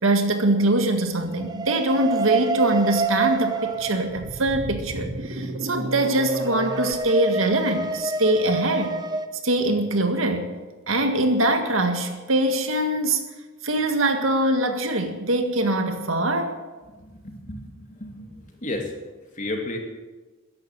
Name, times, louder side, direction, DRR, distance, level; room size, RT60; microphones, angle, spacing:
voice 1, 0.0-9.0 9.4-10.5 10.9-13.2 13.6-16.5, right 1 dB, 85° right, 6 dB, 1.8 m, -23 dB
sound 1, 1.4-4.3 6.2-9.3, right 4 dB, 20° right, 0.6 m, -28 dB
sound 2, 3.7-6.9, right 1 dB, 65° right, 2.2 m, -33 dB
voice 2, 17.1-17.6 18.0-18.3 18.6-18.9 19.4-19.8, left 2 dB, 40° left, 2 dB, 2.6 m, -31 dB
14.0 x 10.5 x 7.9 m, 1.3 s
head